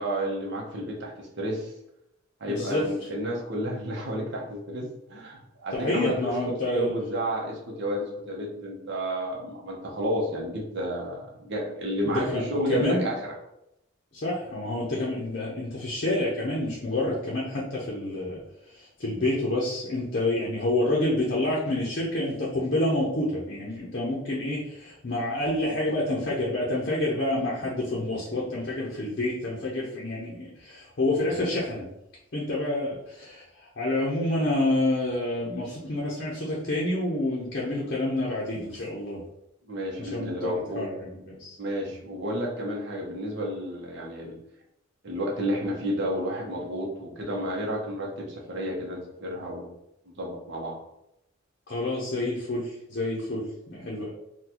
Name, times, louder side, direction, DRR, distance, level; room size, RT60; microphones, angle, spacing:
voice 1, 0.0-1.7 2.4-6.1 6.6-13.3 39.7-40.9 41.6-44.4 45.0-49.7 50.1-50.8, equal, 55° right, -1 dB, 0.8 m, -31 dB
voice 2, 2.5-2.8 5.7-6.9 12.0-13.1 14.1-18.4 18.7-31.9 32.3-39.2 40.0-41.6 51.7-54.1, left 1 dB, 45° left, -5 dB, 0.6 m, -28 dB
3.8 x 2.3 x 2.9 m, 0.82 s
head